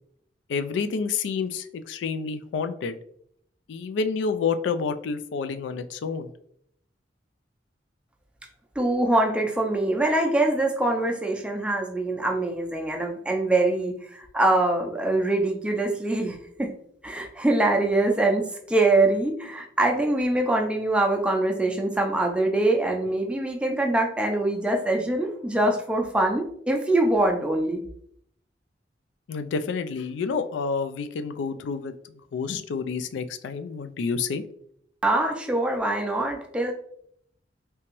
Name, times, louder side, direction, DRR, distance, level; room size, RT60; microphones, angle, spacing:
voice 1, 0.5-3.0 3.7-6.3 29.3-34.4, left 5 dB, 80° left, 11 dB, 0.3 m, -29 dB
voice 2, 8.8-16.7 17.0-27.8 35.0-36.7, right 2 dB, 5° right, 1 dB, 0.4 m, -24 dB
3.3 x 2.9 x 3.0 m, 0.69 s
head